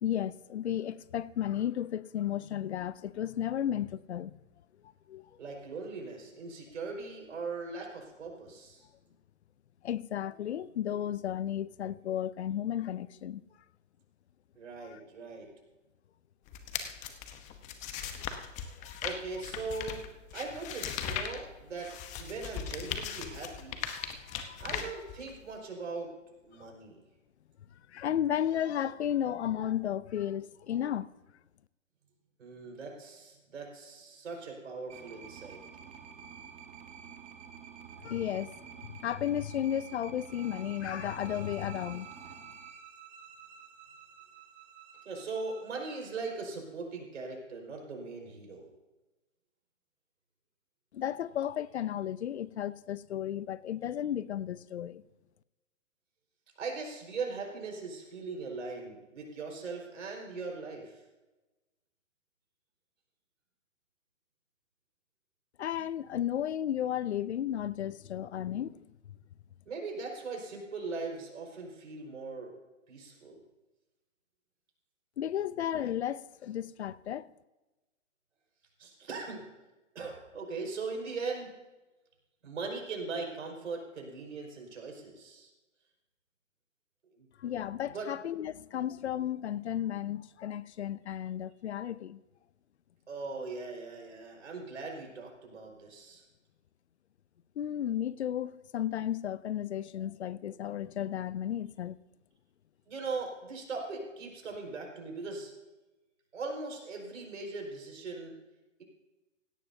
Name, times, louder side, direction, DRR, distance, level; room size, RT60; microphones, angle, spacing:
voice 1, 0.0-4.4 5.1-5.3 9.8-13.4 18.2-18.5 18.8-19.0 24.0-24.6 26.6-26.7 27.9-31.1 38.0-38.5 38.8-42.1 50.9-55.0 65.6-68.8 75.2-77.3 87.4-92.2 97.6-102.0, left 10 dB, 60° left, 0.7 m, -34 dB
voice 2, 5.4-8.9 14.6-15.5 19.0-23.8 24.6-26.1 26.4-27.0 32.4-35.6 45.1-48.7 56.6-61.0 69.7-72.5 72.9-73.4 78.8-79.5 80.0-81.5 82.4-85.5 87.1-87.3 87.8-88.1 93.1-96.2 102.9-105.5 106.3-108.4, right 4 dB, 70° right, 5.2 m, -40 dB
sound 1, 16.5-25.5, left 8 dB, 20° left, 1.0 m, -39 dB
sound 2, 34.9-42.8, right 7 dB, 15° right, 1.3 m, -49 dB
sound 3, 40.2-46.4, right 8 dB, 45° right, 3.2 m, -53 dB
17.0 x 17.0 x 2.8 m
hypercardioid pair, 135°, 38 cm